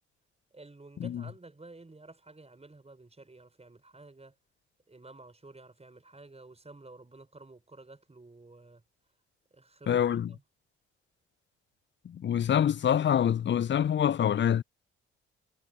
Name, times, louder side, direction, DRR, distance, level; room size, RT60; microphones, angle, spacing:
voice 1, 0.5-4.3 4.9-8.8 9.5-10.4, right 2 dB, 20° right, 6.4 m, -52 dB
voice 2, 9.9-10.3 12.0-14.6, left 9 dB, 35° left, 0.8 m, -26 dB
figure-of-eight pair, 45°, 32 cm